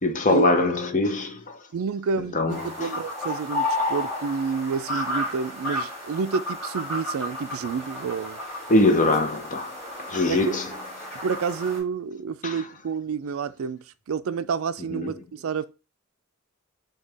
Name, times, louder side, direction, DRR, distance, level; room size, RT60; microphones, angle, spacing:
voice 1, 0.0-1.6 2.3-2.9 8.7-10.6 12.4-12.6 14.9-15.1, left 2 dB, 35° left, 0.7 m, -23 dB
voice 2, 1.7-8.4 10.3-10.6 11.2-15.7, right 5 dB, 75° right, 0.4 m, -29 dB
sound 1, 2.5-11.8, left 1 dB, 5° left, 2.7 m, -32 dB
6.4 x 2.3 x 3.4 m
head